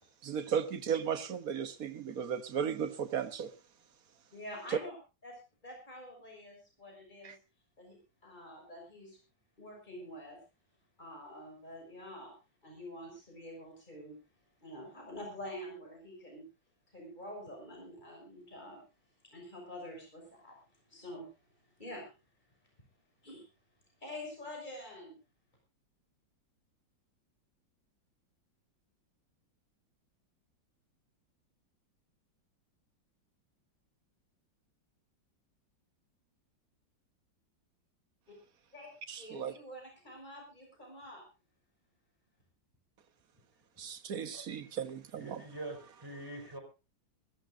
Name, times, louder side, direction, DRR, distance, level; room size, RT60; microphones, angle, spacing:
voice 1, 0.2-3.5 7.2-7.3 39.1-39.5 43.8-45.4, right 7 dB, 50° right, 1.6 m, -35 dB
voice 2, 4.3-4.9 5.2-7.3 7.8-8.0 8.2-9.2 9.6-10.4 11.0-12.3 12.6-14.2 14.6-16.5 16.9-18.8 19.3-21.3 21.8-22.1 23.2-23.4 24.0-25.1 38.3-38.4 38.7-38.9 39.2-41.2, left 1 dB, 25° left, 6.3 m, -47 dB
voice 3, 45.1-46.6, right 1 dB, 10° right, 4.8 m, -44 dB
21.5 x 16.0 x 2.6 m
omnidirectional pair, 2.0 m